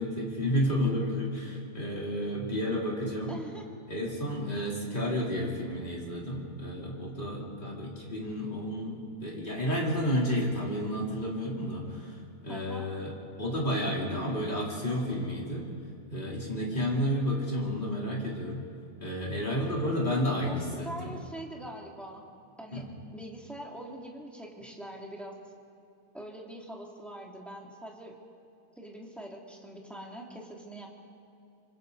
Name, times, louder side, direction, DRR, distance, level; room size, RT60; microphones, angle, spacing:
voice 1, 0.0-3.3 3.9-13.1 13.4-15.7 16.1-18.6 19.0-20.6 21.0-21.1 22.7-22.8, equal, 30° left, -4 dB, 3.9 m, -31 dB
voice 2, 3.3-3.7 12.5-12.9 20.4-22.2 22.6-25.4 26.1-28.2 28.7-30.9, right 1 dB, ahead, -2 dB, 2.7 m, -43 dB
26.0 x 25.0 x 4.1 m, 2.6 s
omnidirectional pair, 1.7 m